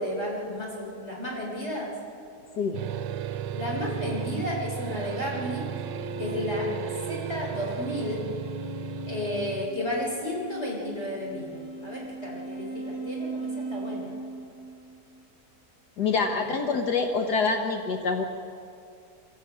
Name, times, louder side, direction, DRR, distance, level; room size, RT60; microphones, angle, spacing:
voice 1, 0.0-1.9 3.5-5.7 6.2-6.7 7.1-8.2 9.1-14.1 16.3-16.6, left 1 dB, 40° left, -3 dB, 4.4 m, -32 dB
sound 1, 2.7-9.7, right 10 dB, 90° right, 1.4 m, -35 dB
sound 2, 5.6-15.2, right 2 dB, 10° right, 3.8 m, -39 dB
voice 2, 16.0-18.3, left 4 dB, 70° left, 4 dB, 1.7 m, -26 dB
23.5 x 14.5 x 8.6 m, 2.4 s
omnidirectional pair, 1.8 m